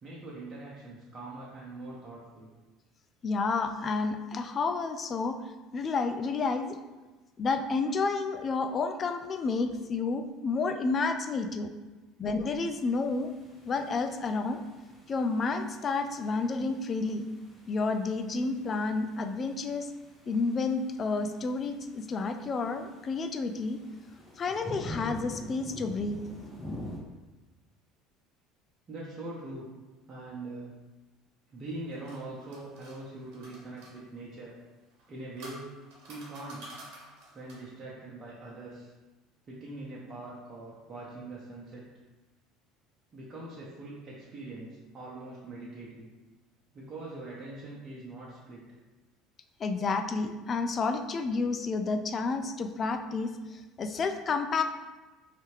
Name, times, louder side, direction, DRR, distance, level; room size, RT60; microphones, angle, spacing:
voice 1, 0.0-2.5 28.9-29.7 30.1-30.8 31.5-34.5 35.1-35.8 36.1-36.8 37.3-38.9 39.5-41.9 43.1-46.1 46.7-48.7, right 2 dB, 40° right, -6 dB, 0.8 m, -42 dB
voice 2, 3.2-5.4 5.7-6.8 7.4-11.7 12.2-13.3 13.7-14.6 15.1-17.2 17.7-19.9 20.3-23.8 24.4-26.2 49.6-54.6, left 4 dB, 40° left, 7 dB, 0.3 m, -30 dB
sound 1, 12.7-27.0, equal, 20° left, 1.1 m, -47 dB
sound 2, 31.6-33.9 34.9-37.7, right 1 dB, 70° right, 1.1 m, -50 dB
3.3 x 2.7 x 3.1 m, 1.2 s
hypercardioid pair, 75°, 0 cm